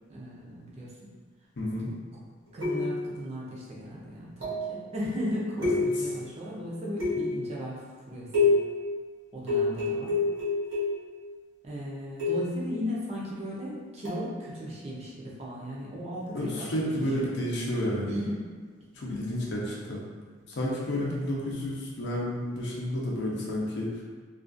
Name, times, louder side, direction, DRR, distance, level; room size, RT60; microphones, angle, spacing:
voice 1, 0.1-1.0 2.5-8.6 9.3-10.2 11.6-17.3 18.1-18.4 21.0-21.2, equal, 30° right, -5 dB, 0.4 m, -36 dB
voice 2, 1.6-1.9 5.6-5.8 16.3-18.2 18.9-20.0 20.5-23.9, equal, 60° left, -4 dB, 0.5 m, -31 dB
sound 1, 2.6-3.2 4.4-4.8 5.6-6.2 7.0-7.5 8.3-8.8 9.5-11.1 12.2-12.6 14.0-14.3, left 3 dB, 75° right, 1.2 m, -27 dB
2.5 x 2.3 x 2.5 m, 1.6 s
head